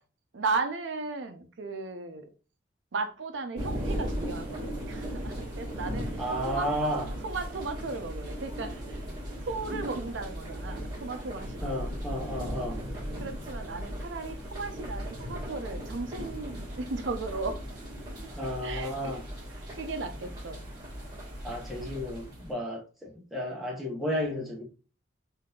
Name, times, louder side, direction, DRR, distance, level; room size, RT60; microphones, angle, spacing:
voice 1, 0.3-2.3 2.9-6.7 7.2-9.0 9.4-11.7 13.2-17.5 18.2-18.3 18.6-19.1 19.5-20.6, right 3 dB, 80° right, 0.5 m, -36 dB
sound 1, 3.6-22.5, equal, 20° right, 1.4 m, -37 dB
voice 2, 6.2-7.1 11.6-12.8 18.4-19.3 21.4-24.6, equal, ahead, 0.8 m, -33 dB
3.7 x 2.6 x 2.3 m
head